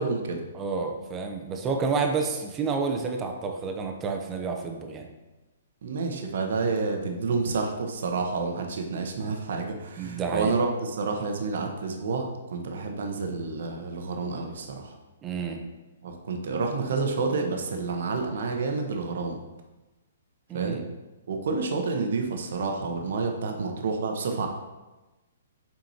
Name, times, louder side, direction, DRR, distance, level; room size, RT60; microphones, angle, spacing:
voice 1, 0.0-0.4 5.8-15.0 16.0-19.4 20.5-20.8 21.3-24.5, right 4 dB, 55° right, 3 dB, 0.9 m, -29 dB
voice 2, 0.5-5.1 10.0-10.6 15.2-15.6 20.5-20.8, right 5 dB, 20° right, 3 dB, 0.8 m, -29 dB
7.4 x 5.1 x 2.9 m, 1.1 s
figure-of-eight pair, 120°, 0 cm